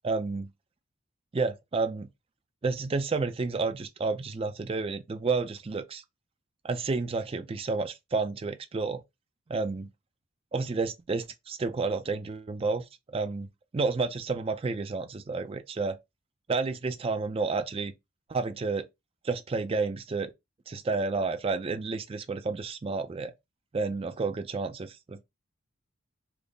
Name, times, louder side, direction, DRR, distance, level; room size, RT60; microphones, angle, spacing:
voice 1, 0.0-0.5 1.3-2.1 2.6-6.0 6.6-9.0 9.5-9.9 10.5-12.8 13.1-13.5 13.7-16.0 16.5-17.9 18.3-18.9 19.2-20.3 20.7-23.3 23.7-25.2, right 4 dB, 25° right, 0.3 m, -30 dB
3.5 x 2.0 x 3.7 m
head